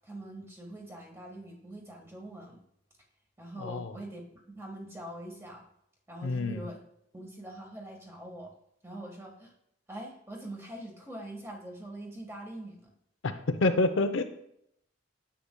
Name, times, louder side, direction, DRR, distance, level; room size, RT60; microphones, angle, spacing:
voice 1, 0.0-2.6 3.4-4.2 4.5-5.6 6.1-6.8 7.1-8.5 8.8-9.5 9.9-12.9, right 1 dB, 15° right, 0 dB, 1.3 m, -43 dB
voice 2, 3.6-4.0 6.2-6.7 13.2-14.2, left 2 dB, 80° left, 8 dB, 0.6 m, -28 dB
10.0 x 7.8 x 2.2 m, 0.75 s
head